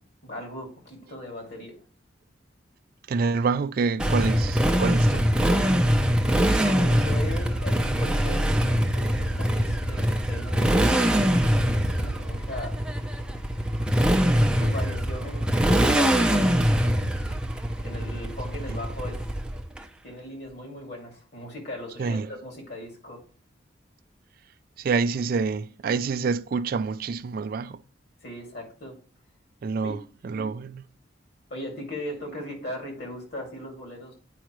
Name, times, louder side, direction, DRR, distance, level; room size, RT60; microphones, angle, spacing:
voice 1, 0.2-1.8 6.6-11.2 11.6-12.8 14.6-16.7 17.8-19.3 20.0-23.2 28.2-29.0 29.8-29.9 31.5-34.1, left 1 dB, 60° left, 2.4 m, -38 dB
voice 2, 3.1-5.4 18.7-18.8 22.0-22.3 24.8-27.8 29.6-30.9 32.1-32.2, right 4 dB, 50° right, 0.3 m, -27 dB
Motorcycle, 4.0-19.8, equal, 5° right, 0.5 m, -23 dB
9.1 x 4.9 x 3.0 m
head